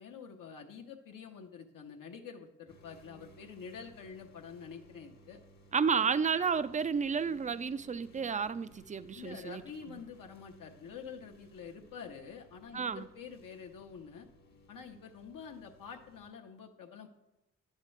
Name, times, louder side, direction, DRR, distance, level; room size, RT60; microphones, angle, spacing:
voice 1, 0.0-5.4 6.0-6.1 9.1-14.3 14.7-17.1, left 6 dB, 75° left, 3 dB, 0.9 m, -47 dB
sound 1, 2.7-16.3, right 1 dB, 55° left, 1.2 m, -60 dB
voice 2, 5.7-9.6 9.9-10.0 12.7-13.1, right 6 dB, 25° right, 15 dB, 0.3 m, -31 dB
10.5 x 7.4 x 3.2 m, 0.92 s
cardioid pair, 60°, 33 cm